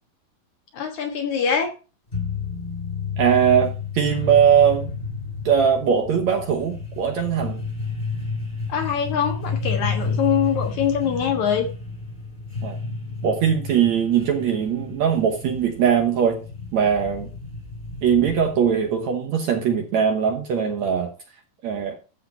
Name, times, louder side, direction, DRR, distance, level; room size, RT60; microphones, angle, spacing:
voice 1, 0.7-1.7 8.7-11.7, left 7 dB, 60° left, 3 dB, 2.5 m, -23 dB
sound 1, 2.1-18.9, left 4 dB, 15° left, 2.0 m, -31 dB
voice 2, 3.2-4.9 5.5-7.6 12.6-12.8 13.2-16.4 16.7-17.3 18.0-21.1 21.6-22.0, right 8 dB, 65° right, 4 dB, 2.0 m, -20 dB
13.5 x 5.0 x 4.4 m, 0.33 s
omnidirectional pair, 4.2 m